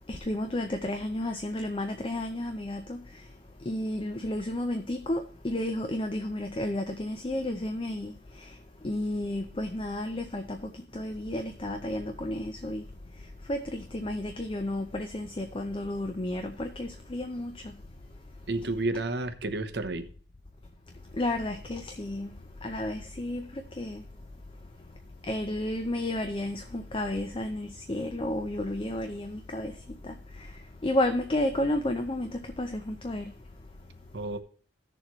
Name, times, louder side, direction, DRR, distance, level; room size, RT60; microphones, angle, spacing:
voice 1, 0.1-3.0 3.7-8.1 8.4-8.5 8.8-10.6 10.9-12.8 13.5-17.5 21.1-22.3 22.6-24.0 25.3-29.7 30.0-30.1 30.8-33.3, left 1 dB, 25° left, 0.6 m, -32 dB
voice 2, 18.5-20.1 34.1-34.4, right 2 dB, 55° right, 0.9 m, -31 dB
16.0 x 6.9 x 3.1 m
head